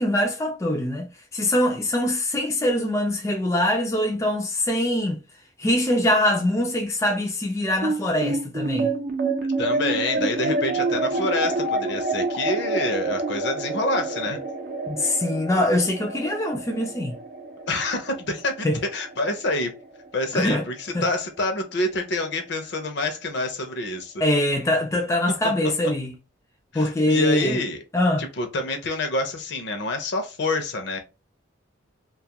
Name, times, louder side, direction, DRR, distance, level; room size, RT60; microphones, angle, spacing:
voice 1, 0.0-5.2 5.6-8.9 14.9-17.2 18.6-18.8 20.3-20.6 20.9-21.1 24.2-26.1 26.7-27.6 27.9-28.2, left 1 dB, 15° left, 0.3 m, -23 dB
sound 1, 7.8-20.4, right 2 dB, 50° right, 0.5 m, -28 dB
voice 2, 9.6-14.4 17.7-18.7 18.9-19.7 20.1-24.1 25.4-25.5 26.7-27.8 28.2-31.0, left 2 dB, 60° left, 0.6 m, -27 dB
2.3 x 2.2 x 2.8 m
head